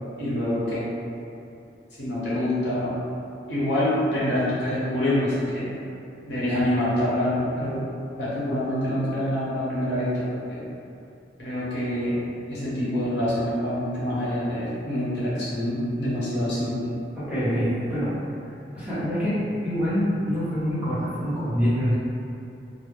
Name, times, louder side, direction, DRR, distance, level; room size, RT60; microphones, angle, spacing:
voice 1, 0.2-0.8 2.0-3.0 3.5-5.7 6.3-7.8 8.2-10.2 10.5-10.7 11.4-12.1 12.5-16.9, left 1 dB, 85° left, -10 dB, 0.8 m, -26 dB
voice 2, 17.1-18.1 18.7-19.4 19.6-22.0, equal, 5° right, -13 dB, 0.7 m, -25 dB
2.1 x 2.0 x 3.0 m, 2.6 s
head